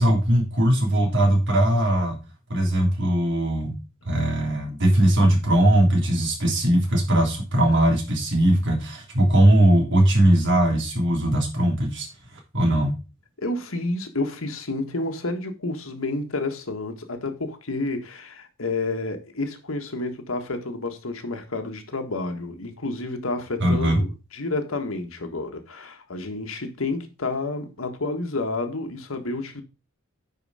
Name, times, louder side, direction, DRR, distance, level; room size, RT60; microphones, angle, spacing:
voice 1, 0.0-2.2 2.5-3.7 4.1-12.1 12.3-13.0 23.6-24.0, right 1 dB, 60° right, 3.2 m, -20 dB
voice 2, 13.4-29.6, left 2 dB, 80° left, 1.6 m, -30 dB
9.7 x 4.9 x 4.9 m
head